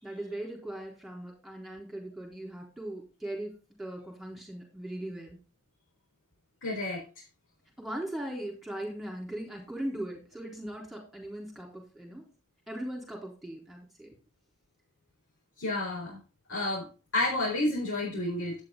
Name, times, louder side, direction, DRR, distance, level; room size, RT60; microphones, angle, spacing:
voice 1, 0.0-5.4 7.8-12.3 12.7-14.2, right 1 dB, ahead, -1 dB, 3.9 m, -39 dB
voice 2, 6.6-7.0 15.6-16.2 16.5-16.9 17.1-18.6, left 2 dB, 55° left, -3 dB, 4.4 m, -30 dB
11.5 x 9.3 x 3.8 m, 0.33 s
head